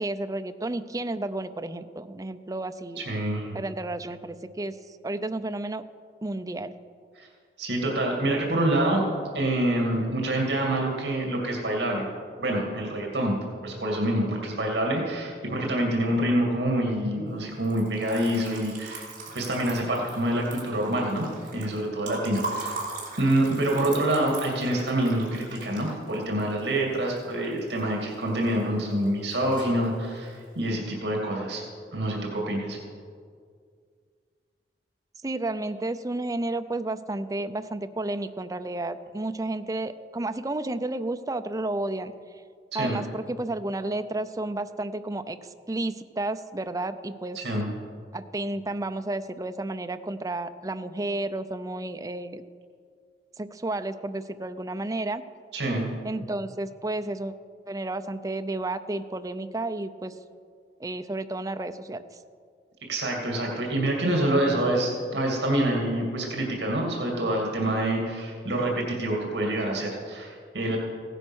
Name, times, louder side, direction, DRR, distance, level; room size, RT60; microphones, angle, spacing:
voice 1, 0.0-3.0 3.5-4.7 5.0-5.8 6.2-6.7 35.2-42.1 42.7-45.4 45.7-47.4 48.1-52.4 53.4-55.2 56.0-57.3 57.7-60.1 60.8-62.0, right 2 dB, 20° right, 9 dB, 0.5 m, -31 dB
voice 2, 3.0-3.6 7.2-7.3 7.6-9.0 9.3-12.1 12.4-13.4 13.6-19.1 19.3-22.8 23.2-31.6 31.9-32.8 42.7-43.0 47.4-47.7 55.5-55.9 62.9-70.8, right 1 dB, 70° right, -1 dB, 2.3 m, -26 dB
Liquid, 17.6-27.8 28.1-28.8 29.1-29.8, right 3 dB, 50° right, 3.2 m, -40 dB
16.0 x 9.9 x 6.2 m, 2.1 s
head